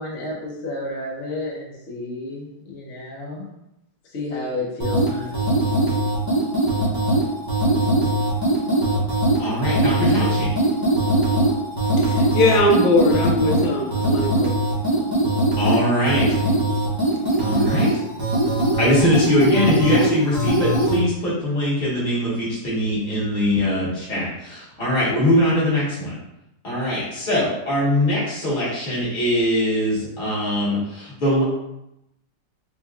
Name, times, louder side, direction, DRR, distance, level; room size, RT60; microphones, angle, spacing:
voice 1, 0.0-3.5 4.0-5.5, left 2 dB, 50° left, -4 dB, 0.8 m, -31 dB
sound 1, 4.8-21.0, right 1 dB, 25° right, 0.5 m, -21 dB
voice 2, 9.4-10.5 15.6-16.4 17.4-17.9 18.8-26.1 26.6-31.4, left 1 dB, 30° left, -8 dB, 1.4 m, -21 dB
voice 3, 12.0-14.6, left 2 dB, 80° left, 1 dB, 1.3 m, -20 dB
4.3 x 2.8 x 2.4 m, 0.84 s
omnidirectional pair, 2.0 m